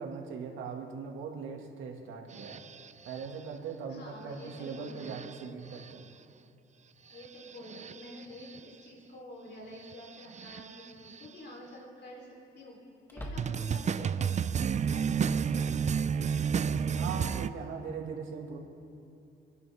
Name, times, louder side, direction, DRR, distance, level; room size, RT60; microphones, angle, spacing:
voice 1, 0.0-2.6 3.1-6.1 16.9-18.6, right 5 dB, 85° right, 1 dB, 2.1 m, -40 dB
sound 1, 2.3-3.3 4.5-5.4 5.7-5.9 7.2-8.6 9.8-11.3 13.4-17.5, right 7 dB, 35° right, 0.5 m, -32 dB
voice 2, 3.9-5.3 7.1-12.8 13.1-14.5 14.9-15.7, left 1 dB, 60° left, -2 dB, 3.8 m, -48 dB
sound 2, 10.5-10.8 11.1-11.2 13.0-13.9, equal, 10° left, 1.8 m, -44 dB
29.5 x 11.0 x 3.6 m, 2.6 s
cardioid pair, 90°, 20 cm